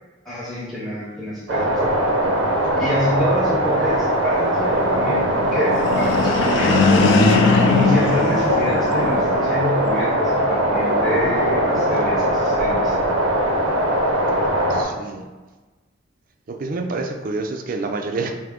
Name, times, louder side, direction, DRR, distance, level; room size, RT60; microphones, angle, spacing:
voice 1, 0.2-2.0 2.7-7.3 7.7-13.0, equal, ahead, -8 dB, 0.6 m, -27 dB
sound 1, 1.5-14.8, equal, 90° right, 0.6 m, -20 dB
sound 2, 5.7-9.3, left 4 dB, 60° left, 0.4 m, -19 dB
voice 2, 14.7-15.3 16.5-18.3, right 3 dB, 45° right, 4 dB, 0.3 m, -27 dB
3.6 x 2.7 x 3.6 m, 1.2 s
head